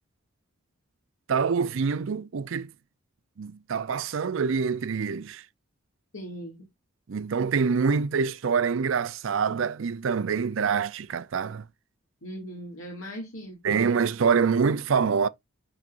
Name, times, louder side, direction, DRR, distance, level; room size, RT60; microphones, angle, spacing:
voice 1, 1.3-2.7 3.4-5.4 7.1-11.6 13.6-15.3, right 5 dB, 65° right, 0.4 m, -25 dB
voice 2, 6.1-6.7 12.2-13.8, equal, 70° left, 2.2 m, -39 dB
10.5 x 4.0 x 2.5 m
head